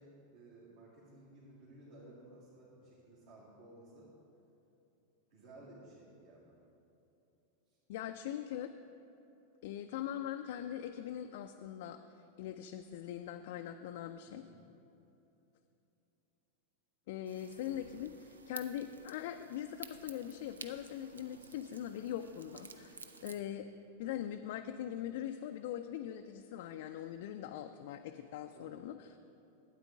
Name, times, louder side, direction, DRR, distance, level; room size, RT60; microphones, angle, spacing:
voice 1, 0.0-4.1 5.3-6.6 7.7-7.8 14.3-14.6 28.5-28.8, right 1 dB, 55° right, -9 dB, 2.4 m, -56 dB
voice 2, 7.9-8.7 9.6-12.0 12.4-14.4 17.1-23.7 24.0-29.2, left 10 dB, 50° left, 6 dB, 0.3 m, -42 dB
sound 1, 17.3-23.4, right 4 dB, 70° right, 0.5 m, -52 dB
12.5 x 8.9 x 3.6 m, 2.9 s
figure-of-eight pair, 90°, 0 cm